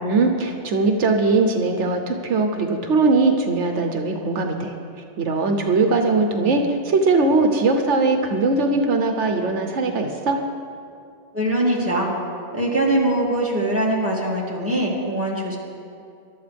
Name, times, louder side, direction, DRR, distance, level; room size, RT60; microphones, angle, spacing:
voice 1, 0.0-4.7 5.2-10.4, right 3 dB, 80° right, 4 dB, 1.2 m, -20 dB
voice 2, 11.3-12.1 12.5-15.6, right 1 dB, 10° right, -4 dB, 2.5 m, -22 dB
22.5 x 12.0 x 3.5 m, 2.5 s
omnidirectional pair, 1.2 m